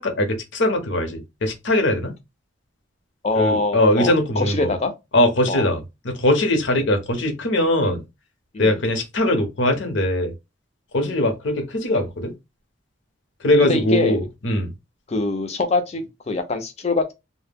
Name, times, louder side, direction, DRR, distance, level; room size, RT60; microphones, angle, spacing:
voice 1, 0.0-2.1 3.3-4.7 5.1-8.0 8.6-10.3 10.9-12.3 13.4-14.7, left 1 dB, 70° left, 0.7 m, -21 dB
voice 2, 3.2-4.9 5.5-5.7 7.8-8.0 8.5-8.8 11.0-11.2 13.6-14.2 15.1-17.1, left 3 dB, 35° left, 0.4 m, -24 dB
2.2 x 2.1 x 3.3 m
head